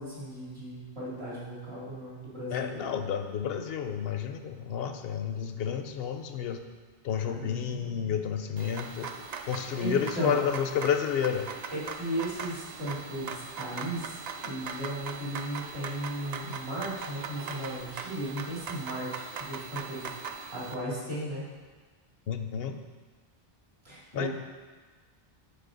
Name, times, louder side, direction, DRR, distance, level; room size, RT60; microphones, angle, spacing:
voice 1, 0.0-2.7 7.1-8.2 9.5-10.5 11.7-14.2 14.4-19.1 19.4-21.4 23.8-24.3, right 1 dB, 80° right, -7 dB, 2.7 m, -36 dB
voice 2, 2.5-6.6 7.0-9.1 9.5-11.5 22.3-22.8 24.1-24.3, left 8 dB, 75° left, 7 dB, 0.8 m, -30 dB
sound 1, 8.6-20.7, right 5 dB, 50° right, 0.5 m, -40 dB
8.9 x 4.8 x 3.8 m, 1.4 s
omnidirectional pair, 1.0 m